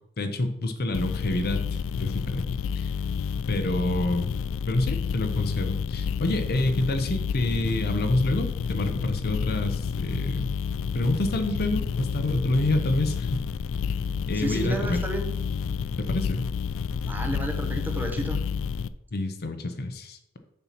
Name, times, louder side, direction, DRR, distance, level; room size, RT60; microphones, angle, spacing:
voice 1, 0.2-2.4 2.8-2.9 3.5-4.3 4.7-10.5 10.9-13.4 14.3-15.0 16.0-16.5 19.1-20.4, left 2 dB, 45° left, 7 dB, 0.7 m, -27 dB
sound 1, 0.9-18.9, left 6 dB, 65° left, 0.3 m, -30 dB
voice 2, 14.3-15.3 17.0-18.4, right 1 dB, 10° right, 4 dB, 0.9 m, -31 dB
7.0 x 4.4 x 5.9 m, 0.79 s
head